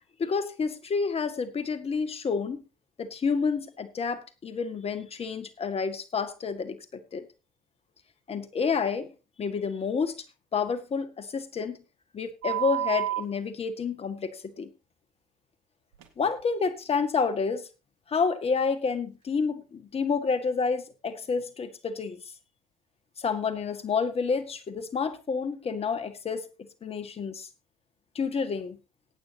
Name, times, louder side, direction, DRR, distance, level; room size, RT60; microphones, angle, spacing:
voice 1, 0.2-2.6 3.0-7.3 8.3-9.1 9.4-10.1 10.5-11.8 12.1-14.7 16.2-17.7 18.1-22.2 23.2-26.5 26.8-27.5 28.2-28.8, left 5 dB, 35° left, 11 dB, 1.9 m, -29 dB
sound 1, 12.4-13.2 16.0-16.1, right 14 dB, 80° right, 1.9 m, -29 dB
19.5 x 8.8 x 2.9 m, 0.29 s
hypercardioid pair, 70°, 17 cm